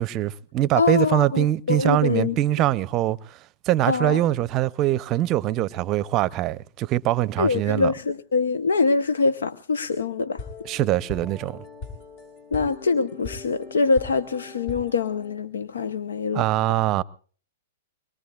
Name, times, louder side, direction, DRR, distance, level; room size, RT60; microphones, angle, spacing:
voice 1, 0.0-3.4 3.7-7.9 10.6-11.6 16.3-17.0, right 14 dB, 35° right, 0.6 m, -23 dB
voice 2, 0.7-2.4 3.9-4.2 7.4-10.4 12.5-16.5, left 4 dB, 85° left, 0.7 m, -24 dB
sound 1, 10.3-15.4, left 4 dB, 55° left, 6.9 m, -40 dB
24.5 x 21.5 x 2.3 m
hypercardioid pair, 125°, 0 cm